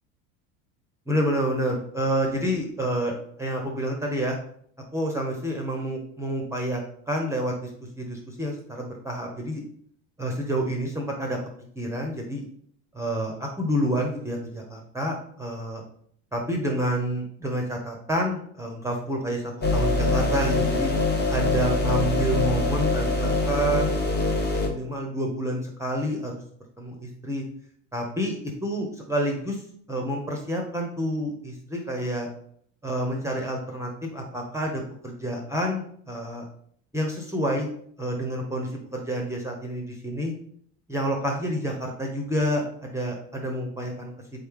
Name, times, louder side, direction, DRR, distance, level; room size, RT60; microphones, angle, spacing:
voice 1, 1.1-4.4 4.9-6.8 7.1-7.7 8.0-9.6 10.2-11.4 11.8-12.4 12.9-15.8 16.3-19.4 19.7-20.9 21.3-26.3 26.8-27.4 27.9-28.4 28.6-29.6 29.9-32.3 32.8-36.5 36.9-37.7 38.0-40.3 40.9-44.1, right 1 dB, 5° right, 1 dB, 0.7 m, -28 dB
sound 1, 19.6-24.7, left 2 dB, 25° left, 0.9 m, -24 dB
3.8 x 3.3 x 3.6 m, 0.62 s
hypercardioid pair, 90°, 41 cm